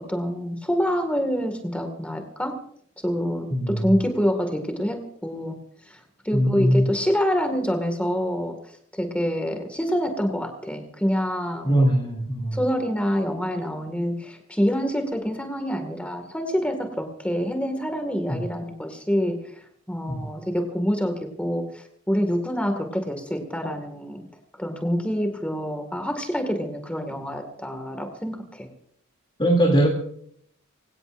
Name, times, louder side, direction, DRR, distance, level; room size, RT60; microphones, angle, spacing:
voice 1, 0.0-2.6 3.0-5.6 5.9-8.6 8.9-11.9 12.5-19.5 19.9-24.2 24.6-28.7, equal, 5° left, 5 dB, 2.0 m, -26 dB
voice 2, 3.5-3.9 6.3-6.9 11.6-12.6 18.3-18.4 20.1-20.2 29.4-29.9, right 1 dB, 20° left, 0 dB, 2.8 m, -21 dB
25.5 x 17.5 x 2.6 m, 0.64 s
head